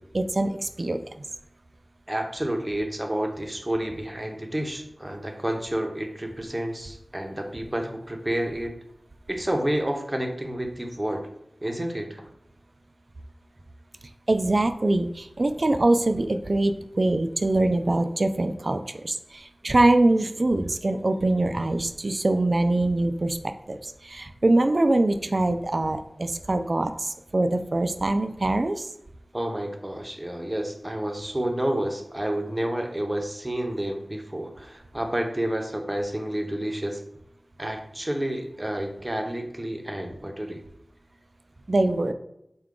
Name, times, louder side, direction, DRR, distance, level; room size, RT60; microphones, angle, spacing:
voice 1, 0.1-1.0 14.3-23.4 23.7-28.9 41.7-42.1, right 2 dB, 55° right, 9 dB, 0.3 m, -23 dB
voice 2, 2.1-8.8 9.3-11.3 11.6-12.3 29.3-37.0 37.6-40.6, right 1 dB, 20° right, 3 dB, 0.7 m, -30 dB
4.7 x 2.3 x 3.7 m, 0.81 s
wide cardioid pair, 55°, 0 cm